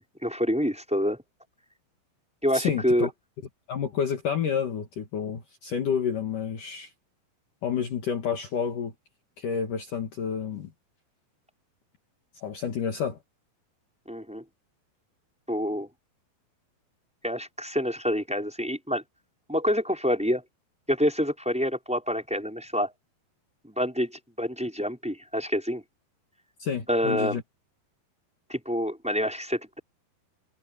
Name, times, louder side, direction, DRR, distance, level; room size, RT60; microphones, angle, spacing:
voice 1, 0.2-1.2 2.4-3.1 14.1-14.4 15.5-15.9 17.2-19.0 19.5-20.4 20.9-22.9 23.6-25.8 26.9-27.4 28.5-29.8, equal, ahead, 5.1 m, -27 dB
voice 2, 2.5-3.1 3.7-6.9 7.6-8.9 9.4-10.7 12.4-13.2 26.6-27.4, left 7 dB, 55° left, 3.2 m, -29 dB
omnidirectional pair, 4.9 m